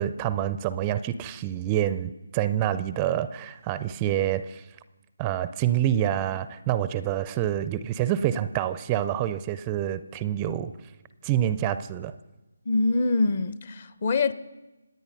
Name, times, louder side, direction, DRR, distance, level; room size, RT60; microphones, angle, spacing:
voice 1, 0.0-4.6 5.2-10.7 11.2-12.1, right 11 dB, 20° right, 0.4 m, -27 dB
voice 2, 12.7-14.3, left 3 dB, 40° left, 0.8 m, -24 dB
26.5 x 9.3 x 5.5 m
figure-of-eight pair, 155°, 0 cm